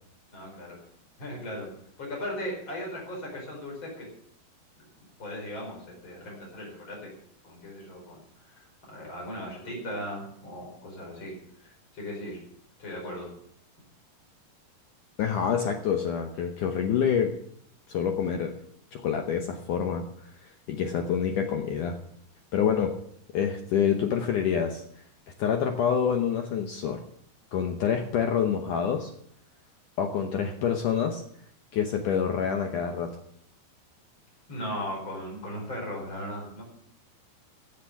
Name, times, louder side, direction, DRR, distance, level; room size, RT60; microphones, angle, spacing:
voice 1, 0.3-0.8 1.2-1.7 2.0-4.1 5.0-7.1 7.4-8.2 8.5-11.3 11.6-12.4 12.8-13.3 34.5-36.6, equal, 30° left, -2 dB, 5.6 m, -37 dB
voice 2, 15.2-17.3 17.9-18.5 18.9-22.0 22.5-22.9 23.3-24.8 25.4-27.0 27.5-29.1 30.0-31.2 31.7-33.1, left 7 dB, 75° left, 4 dB, 1.9 m, -27 dB
15.5 x 8.3 x 7.1 m, 0.68 s
omnidirectional pair, 4.9 m